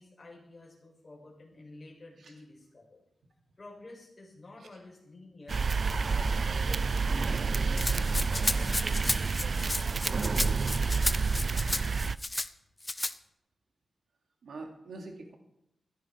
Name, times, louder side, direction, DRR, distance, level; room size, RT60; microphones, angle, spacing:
voice 1, 0.0-3.0 3.6-5.6 6.0-10.4, left 2 dB, 35° left, -2 dB, 7.6 m, -51 dB
sound 1, 5.5-12.2, right 4 dB, 55° right, 0.5 m, -29 dB
Rattle (instrument), 7.8-12.5 12.8-13.1, left 2 dB, 20° left, 0.8 m, -33 dB
voice 2, 14.4-15.3, right 3 dB, 85° right, 3 dB, 2.7 m, -45 dB
16.0 x 15.0 x 4.8 m, 0.81 s
wide cardioid pair, 90°, 0 cm